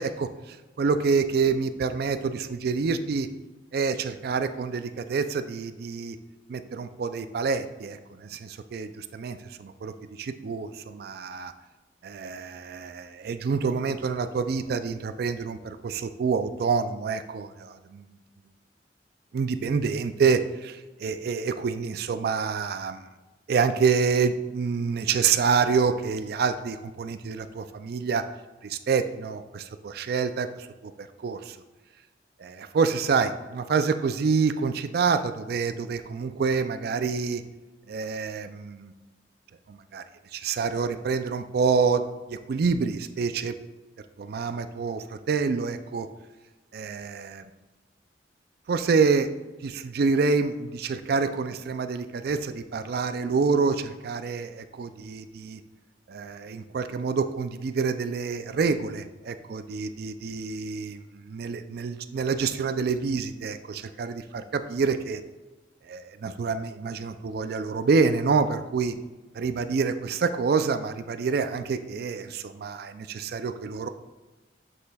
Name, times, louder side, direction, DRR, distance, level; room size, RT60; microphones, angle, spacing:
voice 1, 0.0-3.3 3.7-6.2 6.5-11.5 12.0-18.2 19.3-23.1 23.5-28.2 28.6-31.6 32.4-37.4 37.9-38.9 39.7-40.0 40.3-42.0 42.3-43.5 44.2-46.1 46.7-47.4 48.7-49.3 49.6-55.6 56.1-65.2 65.8-68.9 69.3-73.9, right 5 dB, 55° right, 10 dB, 0.3 m, -27 dB
7.5 x 6.6 x 2.3 m, 1.2 s
head